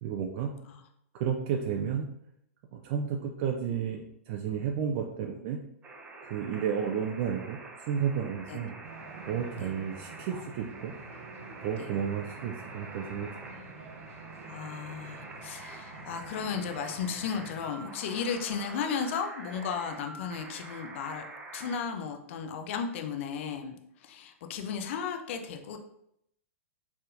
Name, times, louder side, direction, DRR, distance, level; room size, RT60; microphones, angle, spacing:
voice 1, 0.0-0.5 1.1-2.1 2.7-5.6 6.2-7.6 7.9-8.8 9.3-10.9 11.6-13.3, right 7 dB, 45° right, 2 dB, 0.4 m, -32 dB
sound 1, 5.8-21.8, right 2 dB, 15° right, 0.8 m, -46 dB
sound 2, 8.8-17.7, right 3 dB, 65° right, 0.8 m, -49 dB
voice 2, 14.5-21.3 21.5-25.8, left 6 dB, 55° left, 5 dB, 0.6 m, -35 dB
4.2 x 3.5 x 2.6 m, 0.74 s
figure-of-eight pair, 105°, 8 cm